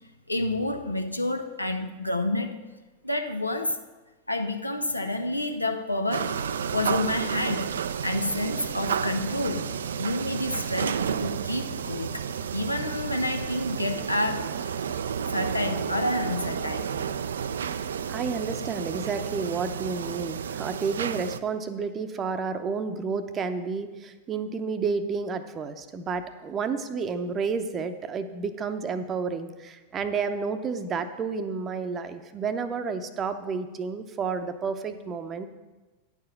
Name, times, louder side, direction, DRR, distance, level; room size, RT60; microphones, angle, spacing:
voice 1, 0.3-2.6 3.0-3.8 4.3-6.3 6.7-7.7 8.0-9.7 10.0-12.3 12.5-14.9 15.3-16.9, left 1 dB, 85° left, 0.7 m, -29 dB
sound 1, 6.1-21.4, right 7 dB, 65° right, 0.3 m, -31 dB
voice 2, 18.1-35.5, right 5 dB, 25° right, 0.7 m, -31 dB
9.8 x 4.8 x 6.8 m
figure-of-eight pair, 90°, 0 cm